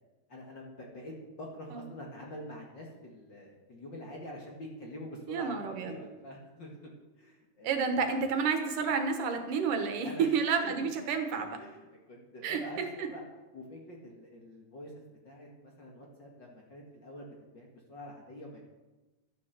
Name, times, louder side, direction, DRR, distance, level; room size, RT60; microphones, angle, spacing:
voice 1, 0.3-6.7 7.2-7.8 10.0-10.9 11.5-11.8 12.1-13.2 13.5-18.6, equal, 40° left, -1 dB, 1.9 m, -46 dB
voice 2, 5.3-5.9 7.6-11.6 12.4-13.1, right 5 dB, 75° right, 6 dB, 2.8 m, -30 dB
12.5 x 9.9 x 6.8 m, 1.1 s
omnidirectional pair, 3.8 m